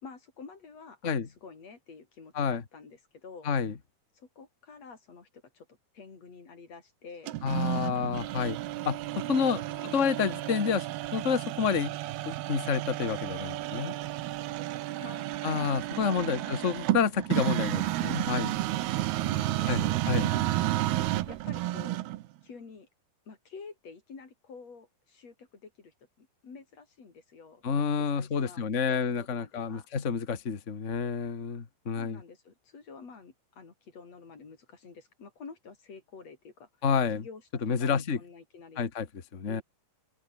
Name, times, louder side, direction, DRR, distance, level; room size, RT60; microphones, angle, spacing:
voice 1, 0.0-3.5 4.2-5.7 5.9-7.4 9.6-10.0 15.0-15.4 16.1-16.8 19.2-20.0 20.3-20.7 21.3-22.0 22.4-22.9 23.3-27.6 28.0-29.9 32.0-36.7 37.2-37.4 37.8-38.9 39.4-39.6, left 5 dB, 40° left, 5.3 m, -49 dB
voice 2, 3.4-3.7 7.4-8.6 8.8-11.9 12.2-13.9 15.4-18.5 19.7-20.3 27.6-32.2 36.8-37.2 37.6-38.2 38.8-39.1 39.3-39.6, left 6 dB, 80° left, 0.6 m, -29 dB
sound 1, 7.3-22.3, right 15 dB, 80° right, 2.9 m, -31 dB
omnidirectional pair, 4.6 m